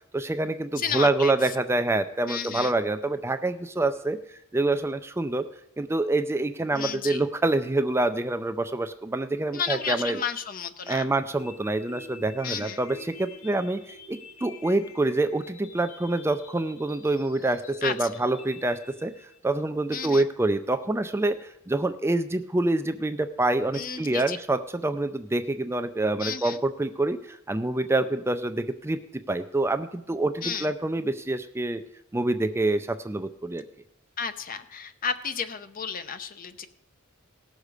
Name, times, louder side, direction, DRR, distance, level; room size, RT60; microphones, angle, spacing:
voice 1, 0.1-4.2 4.5-5.4 5.8-10.2 10.9-19.1 19.4-29.0 29.3-31.8 32.1-33.6, right 2 dB, 10° right, 9 dB, 0.4 m, -26 dB
voice 2, 0.8-1.3 2.3-2.7 6.7-7.2 9.5-11.1 12.4-12.8 17.8-18.1 19.9-20.2 23.7-24.4 26.2-26.6 30.4-30.7 34.2-36.7, left 6 dB, 45° left, 10 dB, 0.7 m, -32 dB
sound 1, 11.4-19.4, left 5 dB, 75° left, 0.9 m, -47 dB
17.5 x 6.5 x 4.9 m, 0.78 s
head